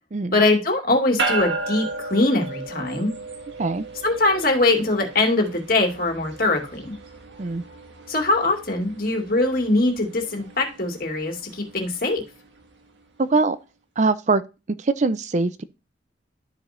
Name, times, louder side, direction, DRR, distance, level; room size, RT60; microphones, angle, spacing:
voice 1, 0.3-3.1 4.0-7.0 8.1-12.2, left 2 dB, 50° left, 2.4 m, -22 dB
sound 1, 1.2-12.8, right 3 dB, 85° right, 1.8 m, -34 dB
voice 2, 13.2-13.6 14.0-14.4 14.7-15.6, right 3 dB, 40° right, 0.5 m, -22 dB
13.0 x 5.0 x 2.5 m
head